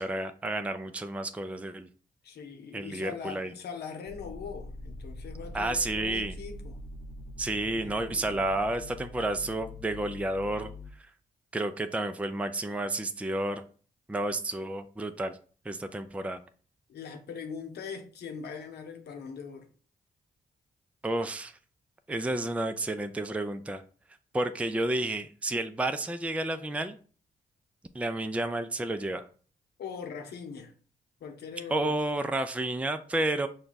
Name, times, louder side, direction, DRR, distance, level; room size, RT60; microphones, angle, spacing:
voice 1, 0.0-1.9 2.7-3.5 5.5-6.3 7.4-10.7 11.5-13.6 14.1-15.4 15.7-16.4 21.0-21.5 22.1-23.8 24.3-27.0 27.9-29.3 31.7-33.5, right 2 dB, 10° right, 0.5 m, -31 dB
voice 2, 2.2-6.8 7.7-8.4 16.9-19.7 29.8-30.7 31.2-31.9, left 6 dB, 75° left, 0.9 m, -41 dB
sound 1, 4.1-10.9, left 2 dB, 40° left, 0.8 m, -43 dB
5.0 x 2.3 x 4.0 m
supercardioid pair, 50°, 17 cm